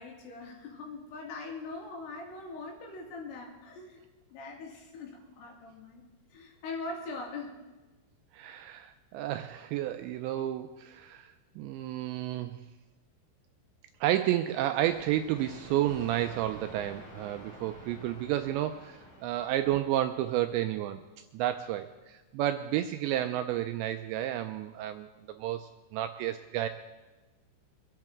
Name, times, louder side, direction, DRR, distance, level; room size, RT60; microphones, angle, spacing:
voice 1, 0.0-4.0 4.3-6.0 6.3-7.6, left 3 dB, 90° left, -2 dB, 5.1 m, -42 dB
voice 2, 8.3-12.6 14.0-21.0 21.3-25.1 25.4-26.7, right 13 dB, 85° right, 8 dB, 2.5 m, -31 dB
sound 1, 14.8-20.5, equal, 35° left, 3.6 m, -50 dB
24.5 x 10.5 x 3.6 m, 1.1 s
omnidirectional pair, 5.7 m